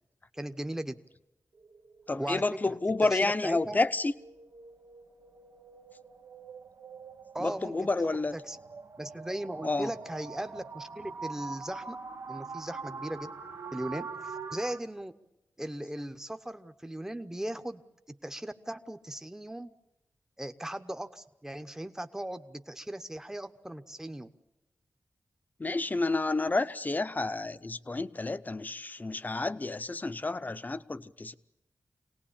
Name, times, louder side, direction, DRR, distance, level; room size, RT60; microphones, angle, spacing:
voice 1, 0.3-1.0 2.2-3.8 7.3-8.6 9.0-12.0 12.3-13.3 13.7-15.1 15.6-17.8 18.1-19.7 20.4-24.3, right 1 dB, 10° right, 0.9 m, -38 dB
sound 1, 1.5-14.8, right 4 dB, 85° right, 1.5 m, -44 dB
voice 2, 2.1-4.1 7.4-8.3 9.6-9.9 25.6-31.3, left 3 dB, 30° left, 0.8 m, -30 dB
25.0 x 18.5 x 8.8 m
wide cardioid pair, 90°, 6 cm